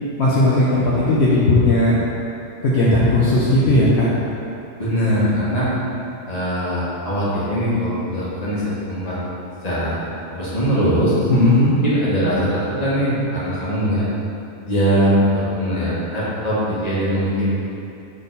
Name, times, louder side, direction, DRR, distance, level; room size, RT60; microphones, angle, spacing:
voice 1, 0.2-2.0 2.6-4.1 11.3-11.8, left 1 dB, 65° left, -7 dB, 1.0 m, -16 dB
voice 2, 4.8-5.7 6.3-9.1 9.6-9.9 10.3-11.1 11.8-14.1 14.6-17.5, equal, 35° left, -9 dB, 1.6 m, -21 dB
6.4 x 3.7 x 4.0 m, 2.7 s
omnidirectional pair, 1.2 m